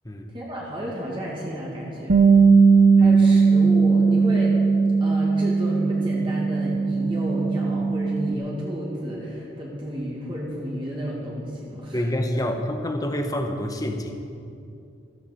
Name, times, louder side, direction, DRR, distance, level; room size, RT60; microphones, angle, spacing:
voice 1, 0.3-2.2 3.0-4.6 5.0-12.0, equal, 25° right, -4 dB, 2.2 m, -32 dB
Bass guitar, 2.1-8.3, right 4 dB, 50° right, 0.7 m, -18 dB
voice 2, 11.9-14.2, left 1 dB, 20° left, 4 dB, 1.0 m, -27 dB
14.0 x 13.0 x 5.2 m, 2.6 s
head